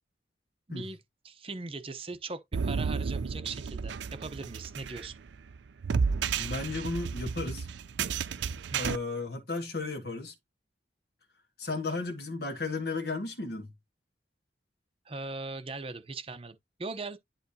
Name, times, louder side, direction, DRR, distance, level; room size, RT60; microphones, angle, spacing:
voice 1, 0.7-1.0 1.2-5.1 8.7-9.0 15.1-17.2, right 3 dB, 30° right, 0.7 m, -39 dB
sound 1, 2.5-9.0, right 5 dB, 80° right, 0.4 m, -32 dB
voice 2, 6.3-7.7 8.7-10.3 11.6-13.7, left 3 dB, 60° left, 1.4 m, -34 dB
10.5 x 3.9 x 2.7 m
head